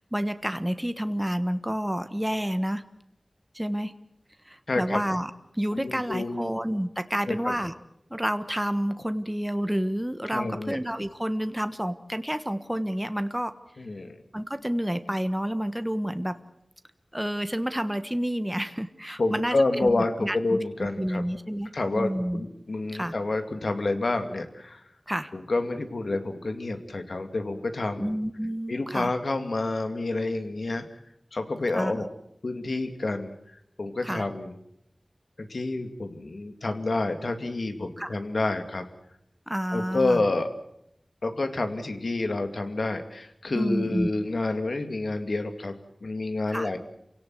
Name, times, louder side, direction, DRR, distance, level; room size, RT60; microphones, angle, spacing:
voice 1, 0.0-2.8 3.5-3.9 4.5-5.3 5.6-7.7 8.1-13.5 14.3-16.4 17.1-20.6 21.0-22.4 22.9-23.1 25.1-25.3 28.0-29.1 31.7-32.1 34.0-34.3 38.0-38.2 39.5-40.2 43.5-44.1 46.5-46.7, equal, 10° right, 10 dB, 1.3 m, -29 dB
voice 2, 4.7-5.0 5.7-6.5 7.3-7.5 10.3-10.8 13.8-14.2 19.2-21.2 21.7-24.8 25.3-28.2 28.7-30.8 31.3-32.1 32.4-33.4 33.8-34.5 35.4-38.9 39.7-40.5 41.2-46.8, left 2 dB, 75° left, 7 dB, 2.3 m, -28 dB
28.0 x 17.5 x 7.8 m, 0.78 s
wide cardioid pair, 55°, 0 cm